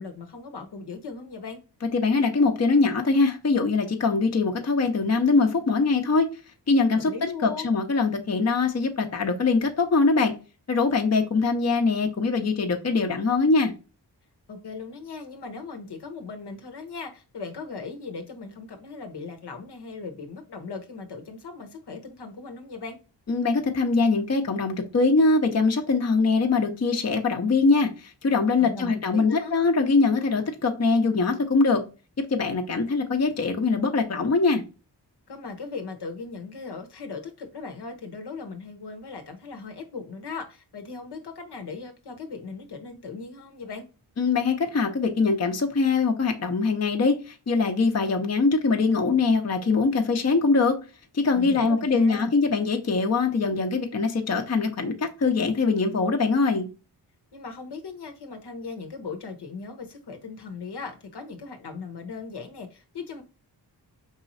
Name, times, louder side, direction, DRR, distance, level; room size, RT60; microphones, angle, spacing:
voice 1, 0.0-1.6 6.9-7.7 14.5-23.0 28.6-29.5 35.3-43.9 51.3-52.3 57.3-63.2, left 4 dB, 65° left, 1.0 m, -38 dB
voice 2, 1.9-6.3 6.7-7.1 7.4-10.3 10.7-13.7 23.3-31.8 32.3-34.6 44.2-50.8 51.1-56.7, left 4 dB, 35° left, 0.8 m, -22 dB
4.7 x 3.0 x 2.6 m
cardioid pair, 55°, 43 cm